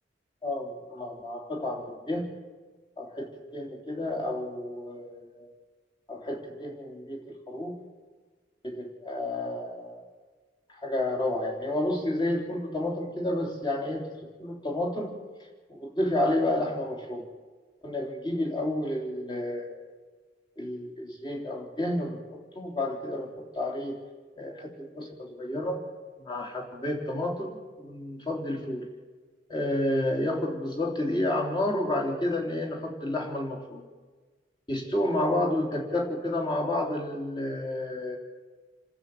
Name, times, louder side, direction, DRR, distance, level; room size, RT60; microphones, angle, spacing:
voice 1, 0.4-2.3 3.0-5.5 6.1-7.8 8.6-10.0 10.7-15.2 15.7-17.3 17.8-19.8 20.6-24.0 24.4-25.8 26.2-28.9 29.5-33.9 34.7-38.2, left 1 dB, 25° left, 0 dB, 3.7 m, -30 dB
28.0 x 12.5 x 8.6 m, 1.4 s
head